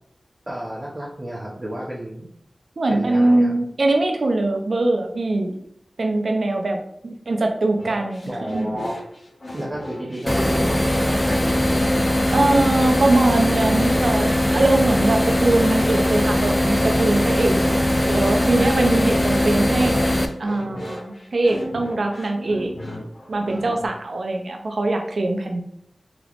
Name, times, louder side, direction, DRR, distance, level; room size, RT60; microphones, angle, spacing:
voice 1, 0.5-2.3 2.9-3.5 8.3-9.0 9.5-11.5, right 1 dB, 35° right, -7 dB, 0.8 m, -32 dB
voice 2, 2.8-5.6 6.0-8.7 12.3-17.6 18.1-20.1 20.4-22.7 23.3-25.6, right 2 dB, 75° right, 3 dB, 0.5 m, -22 dB
sound 1, 7.8-23.9, left 1 dB, 60° left, 0.8 m, -36 dB
sound 2, 10.3-20.3, left 1 dB, 15° left, 0.4 m, -20 dB
3.4 x 2.9 x 2.4 m, 0.73 s
wide cardioid pair, 55°, 0 cm